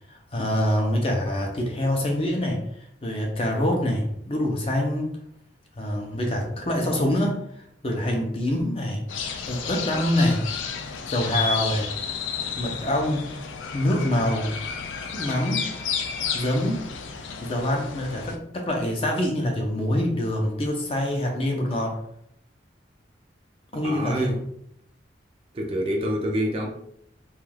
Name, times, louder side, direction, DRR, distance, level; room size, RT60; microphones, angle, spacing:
voice 1, 0.1-2.6 3.0-5.2 5.8-7.4 7.8-9.0 9.4-10.4 11.1-11.9 12.6-13.3 13.7-14.5 15.1-15.7 16.3-16.8 17.4-22.0 23.7-24.3, left 1 dB, 30° left, 1 dB, 0.5 m, -25 dB
sound 1, 9.1-18.4, left 6 dB, 90° left, 0.3 m, -32 dB
voice 2, 23.8-24.4 25.5-26.7, right 1 dB, 30° right, 1 dB, 0.4 m, -26 dB
2.3 x 2.2 x 3.2 m, 0.71 s
head